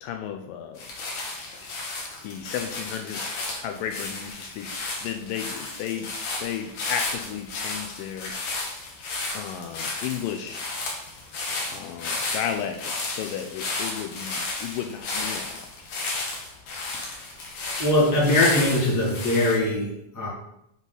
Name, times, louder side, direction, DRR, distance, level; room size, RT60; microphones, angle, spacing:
voice 1, 0.0-0.8 2.2-6.1 6.4-8.4 9.3-10.6 11.7-15.9, left 9 dB, 80° left, 5 dB, 2.1 m, -34 dB
sound 1, 0.8-19.6, left 3 dB, 60° left, 2.3 m, -33 dB
voice 2, 17.8-20.3, left 1 dB, 10° left, -6 dB, 1.1 m, -21 dB
6.8 x 4.8 x 4.0 m, 0.79 s
omnidirectional pair, 4.1 m